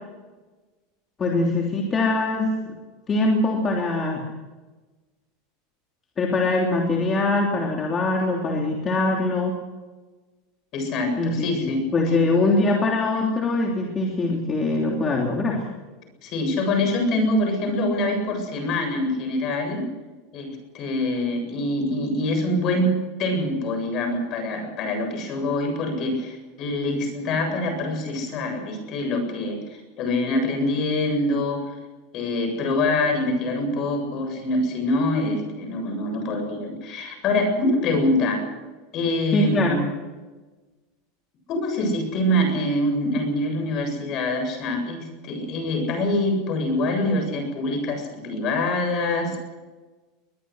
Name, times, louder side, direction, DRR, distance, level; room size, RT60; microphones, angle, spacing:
voice 1, 1.2-2.7 3.1-4.2 6.2-9.5 11.2-15.7 39.3-39.8, left 2 dB, 20° left, 0 dB, 3.2 m, -23 dB
voice 2, 10.7-11.8 16.2-19.9 20.3-22.9 23.2-29.6 30.0-31.7 32.1-38.4 38.9-39.9 41.5-49.4, left 1 dB, 40° left, 5 dB, 7.6 m, -25 dB
22.5 x 21.0 x 6.5 m, 1.2 s
supercardioid pair, 155°, 0 cm